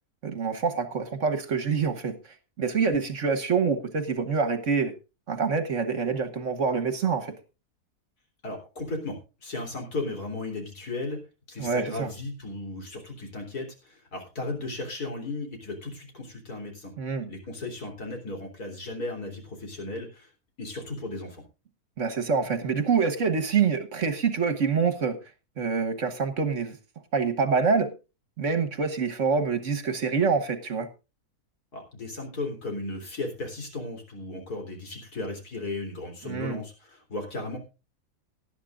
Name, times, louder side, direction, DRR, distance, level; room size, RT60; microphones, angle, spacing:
voice 1, 0.2-2.2 2.6-4.9 5.3-7.3 11.6-12.1 17.0-17.3 22.0-25.2 25.6-26.8 27.1-27.9 28.4-30.9 36.2-36.6, right 5 dB, 55° right, 9 dB, 1.5 m, -26 dB
voice 2, 8.4-11.2 11.5-16.9 17.3-20.3 20.6-21.4 31.7-37.6, left 2 dB, 75° left, 2 dB, 3.9 m, -35 dB
18.5 x 11.5 x 2.5 m, 0.30 s
omnidirectional pair, 1.7 m